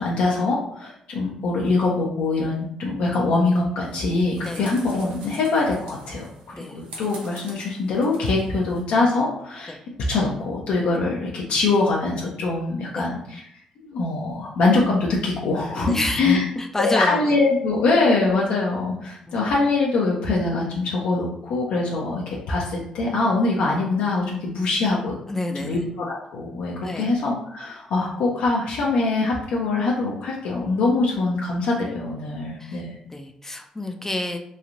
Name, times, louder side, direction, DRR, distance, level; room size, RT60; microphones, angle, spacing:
voice 1, 0.0-6.3 6.6-9.8 10.1-13.4 13.8-16.5 16.8-25.2 25.5-32.9, left 3 dB, 75° left, -3 dB, 0.5 m, -23 dB
sound 1, 3.8-8.8, right 2 dB, 80° right, 0.7 m, -44 dB
voice 2, 15.8-17.3 19.3-19.4 25.3-25.8 26.8-27.1 32.6-32.8 33.1-34.4, left 2 dB, 20° left, 4 dB, 0.4 m, -28 dB
3.0 x 2.4 x 2.5 m, 0.70 s
supercardioid pair, 65°, 2 cm